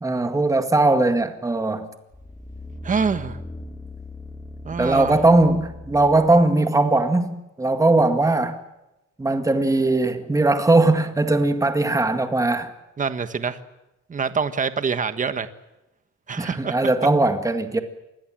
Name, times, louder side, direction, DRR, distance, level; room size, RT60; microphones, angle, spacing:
voice 1, 0.0-1.9 4.8-8.6 9.2-12.7 16.4-17.8, right 2 dB, 10° right, 2.0 m, -19 dB
sound 1, 2.1-6.5 7.0-7.1, left 1 dB, 10° left, 1.6 m, -39 dB
voice 2, 2.8-3.4 4.6-5.2 8.0-8.1 13.0-13.6 14.1-15.5 16.3-17.1, right 5 dB, 25° right, 1.4 m, -25 dB
26.5 x 21.5 x 7.6 m
cardioid pair, 155°, 29 cm